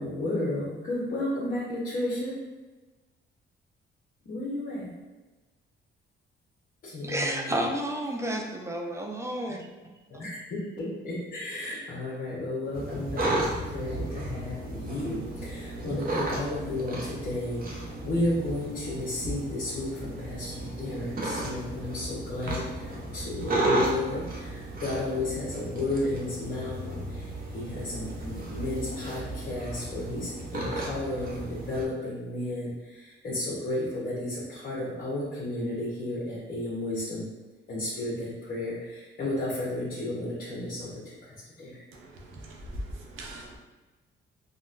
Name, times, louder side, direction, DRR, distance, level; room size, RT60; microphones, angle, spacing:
voice 1, 0.0-2.4 4.2-4.9 6.8-7.6 10.1-13.3 13.7-37.3 37.7-40.9 41.2-41.8, left 1 dB, 50° left, -7 dB, 0.9 m, -33 dB
voice 2, 7.0-9.7 10.1-10.3, right 1 dB, 15° right, 1 dB, 0.4 m, -31 dB
sound 1, 12.7-31.8, right 1 dB, 50° right, 0.7 m, -34 dB
voice 3, 41.9-43.6, equal, 85° right, 0 dB, 0.7 m, -40 dB
3.8 x 2.2 x 2.5 m, 1.2 s
cardioid pair, 90°, 20 cm